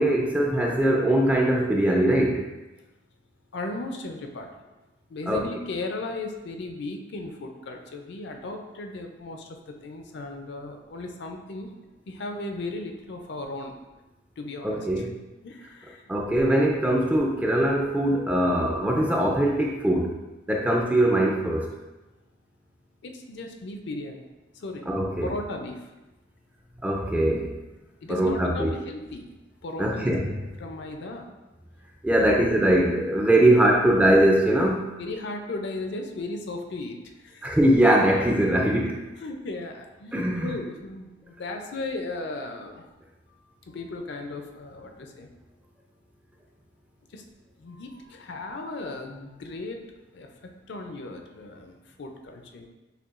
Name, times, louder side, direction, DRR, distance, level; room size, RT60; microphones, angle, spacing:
voice 1, 0.0-2.4 5.3-5.4 14.6-15.1 16.1-20.2 20.5-21.7 24.9-25.3 26.8-27.5 28.1-28.7 29.8-30.4 32.0-34.9 37.4-39.0 40.1-40.5, right 1 dB, 10° right, 0 dB, 0.3 m, -21 dB
voice 2, 3.5-4.5 5.1-9.5 9.8-11.7 12.1-13.7 14.4-15.1 15.4-16.0 16.5-16.6 23.0-24.3 24.6-24.8 25.2-25.8 28.0-29.3 29.6-30.1 30.6-31.2 32.2-32.3 35.0-37.0 37.2-37.6 39.2-40.1 40.4-42.9 43.7-45.3 47.1-47.2 47.6-49.8 50.1-50.3 50.7-52.7, left 2 dB, 60° left, 4 dB, 0.5 m, -36 dB
6.5 x 2.2 x 2.4 m, 1.1 s
head